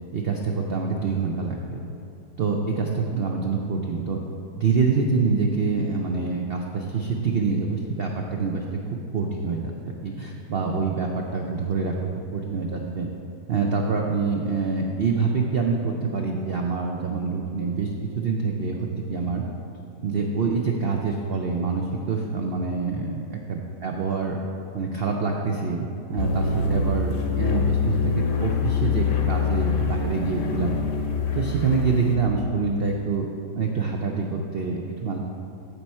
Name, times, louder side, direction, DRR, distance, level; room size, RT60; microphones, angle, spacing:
voice 1, 0.1-1.8 2.4-4.2 4.6-8.6 9.1-13.1 13.5-19.4 20.0-24.4 24.7-30.8 31.3-33.3 33.5-35.2, right 4 dB, 90° right, 1 dB, 0.5 m, -26 dB
sound 1, 26.2-32.2, left 5 dB, 55° left, 1.0 m, -25 dB
14.0 x 4.7 x 4.3 m, 2.7 s
omnidirectional pair, 1.8 m